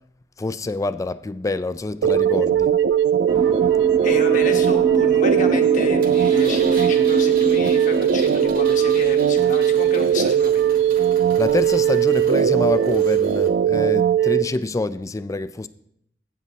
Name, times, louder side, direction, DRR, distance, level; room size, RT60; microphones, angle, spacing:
voice 1, 0.4-2.7 11.4-15.7, left 2 dB, 20° left, 0.3 m, -26 dB
sound 1, 2.0-14.4, right 9 dB, 85° right, 0.3 m, -19 dB
sound 2, 3.3-12.7, right 2 dB, 30° right, 0.8 m, -27 dB
voice 2, 4.0-10.6, left 3 dB, 45° left, 1.2 m, -31 dB
Engine, 6.0-13.5, right 3 dB, 55° right, 1.2 m, -40 dB
15.5 x 6.9 x 2.8 m
head